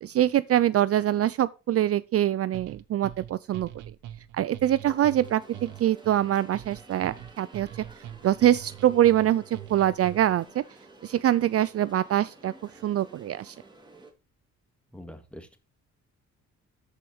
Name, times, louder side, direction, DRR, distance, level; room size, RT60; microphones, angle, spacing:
voice 1, 0.0-3.7 4.3-7.7 8.2-10.6 11.0-12.5 12.8-13.5, right 12 dB, 50° right, 0.5 m, -24 dB
sound 1, 2.5-10.5, right 12 dB, 80° right, 0.9 m, -43 dB
sound 2, 4.8-14.1, right 2 dB, 15° right, 2.8 m, -51 dB
voice 2, 14.9-15.6, equal, 5° left, 2.0 m, -44 dB
13.5 x 4.9 x 4.4 m
cardioid pair, 90°, 30 cm